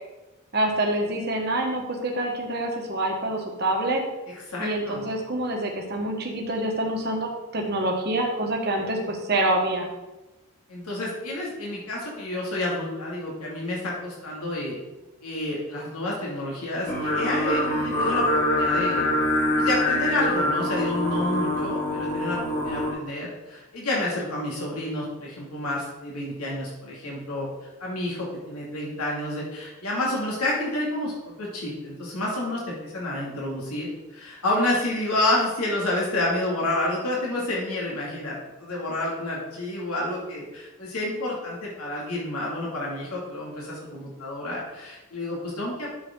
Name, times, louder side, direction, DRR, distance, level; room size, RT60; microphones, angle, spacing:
voice 1, 0.5-4.0 4.6-9.9, right 1 dB, 45° right, 0 dB, 1.4 m, -26 dB
voice 2, 4.5-5.0 10.7-14.8 15.2-19.1 19.6-22.4 22.6-27.5 27.8-45.9, left 1 dB, 90° left, -4 dB, 2.5 m, -29 dB
Singing, 16.8-22.9, left 1 dB, 35° left, 2.7 m, -24 dB
9.7 x 7.0 x 3.8 m, 1.0 s
head